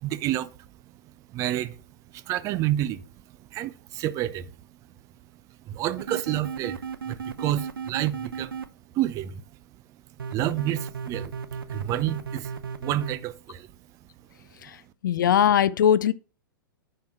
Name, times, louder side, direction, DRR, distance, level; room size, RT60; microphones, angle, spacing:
voice 1, 0.0-0.5 1.3-1.8 2.1-3.1 3.4-4.5 5.7-8.5 8.9-9.4 10.3-11.3 11.7-13.7, right 13 dB, 25° right, 0.6 m, -29 dB
sound 1, 6.0-8.7 10.2-13.2, right 6 dB, 75° right, 0.8 m, -34 dB
voice 2, 14.6-16.1, left 9 dB, 60° left, 0.5 m, -21 dB
10.5 x 4.5 x 4.5 m
figure-of-eight pair, 110°, 12 cm